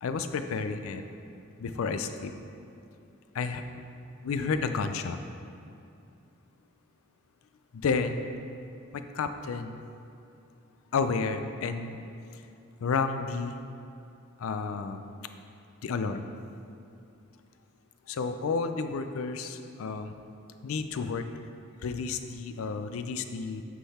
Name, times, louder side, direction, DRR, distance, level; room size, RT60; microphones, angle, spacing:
voice 1, 0.0-1.0 1.6-2.3 3.3-3.6 4.2-5.2 7.7-8.2 8.9-9.8 10.9-12.0 12.8-13.6 14.4-15.0 15.8-16.3 18.1-20.1 20.6-21.3 21.8-23.6, left 4 dB, 85° left, 9 dB, 0.4 m, -31 dB
8.3 x 3.9 x 4.2 m, 2.6 s
head